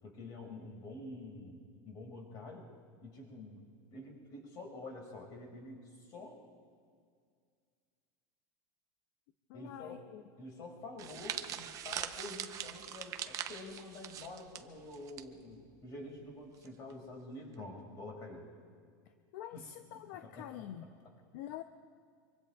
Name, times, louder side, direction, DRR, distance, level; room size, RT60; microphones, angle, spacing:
voice 1, 0.0-2.7 3.0-3.6 3.9-6.4 9.5-10.0 10.4-18.5 19.5-19.6 20.2-21.2, left 2 dB, 40° left, 1 dB, 5.1 m, -48 dB
voice 2, 9.5-10.2 19.3-20.9 21.3-21.6, left 12 dB, 65° left, 8 dB, 0.6 m, -46 dB
sound 1, 11.0-15.2 15.5-15.8 16.6-16.9, right 10 dB, 30° right, 0.7 m, -42 dB
25.0 x 24.5 x 2.4 m, 2.1 s
supercardioid pair, 155°, 11 cm